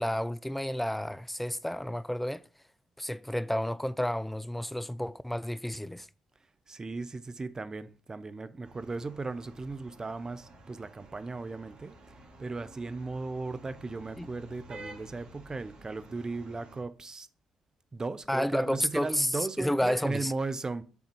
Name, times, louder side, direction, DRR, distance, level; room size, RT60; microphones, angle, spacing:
voice 1, 0.0-2.4 3.0-6.1 14.2-14.3 18.3-19.3 19.6-20.3, equal, 5° left, 0.4 m, -31 dB
voice 2, 6.7-12.0 12.4-17.3 17.9-20.8, right 3 dB, 30° right, 0.8 m, -36 dB
sound 1, 8.6-16.8, right 1 dB, 55° right, 2.3 m, -51 dB
7.0 x 3.9 x 6.2 m
hypercardioid pair, 50°, 2 cm